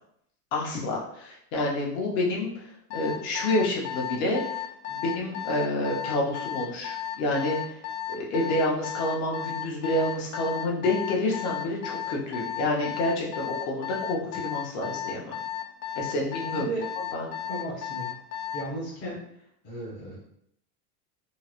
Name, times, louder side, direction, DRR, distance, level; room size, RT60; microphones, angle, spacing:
voice 1, 0.5-4.6 4.9-7.8 8.1-15.3 16.0-16.7 17.1-17.3, left 1 dB, 50° left, -2 dB, 0.8 m, -28 dB
Alarm, 2.9-18.7, left 10 dB, 80° left, 0.8 m, -34 dB
voice 2, 16.4-16.9 17.5-18.1 18.5-19.2 19.6-20.2, right 1 dB, 20° left, -7 dB, 0.5 m, -35 dB
3.7 x 2.0 x 2.9 m, 0.71 s
cardioid pair, 180°, 46 cm